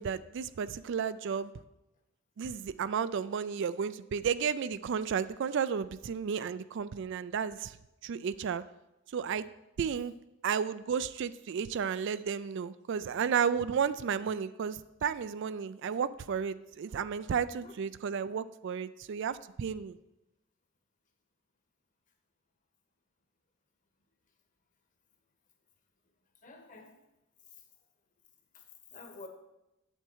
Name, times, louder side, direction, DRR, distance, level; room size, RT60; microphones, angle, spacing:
voice 1, 0.0-1.5 2.4-7.8 8.0-8.6 9.1-9.5 9.8-10.1 10.4-20.0, right 7 dB, 60° right, 15 dB, 0.4 m, -33 dB
voice 2, 26.4-27.0 27.5-27.6 28.5-29.3, left 3 dB, 40° left, 5 dB, 1.2 m, -50 dB
8.1 x 7.9 x 4.6 m, 0.94 s
head